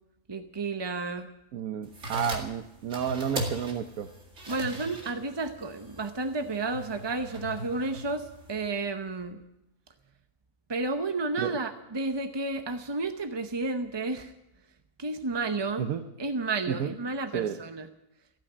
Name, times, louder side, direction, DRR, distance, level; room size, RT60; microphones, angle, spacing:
voice 1, 0.3-1.3 4.5-9.4 10.7-14.3 15.0-15.9 16.2-17.9, right 3 dB, 25° right, 7 dB, 0.5 m, -31 dB
voice 2, 1.5-4.1 11.4-11.5 15.8-16.0 16.8-16.9 17.3-17.6, right 9 dB, 75° right, 8 dB, 1.2 m, -31 dB
sound 1, 1.8-8.7, right 1 dB, 55° right, 2.6 m, -39 dB
15.0 x 9.2 x 9.9 m, 0.86 s
omnidirectional pair, 1.6 m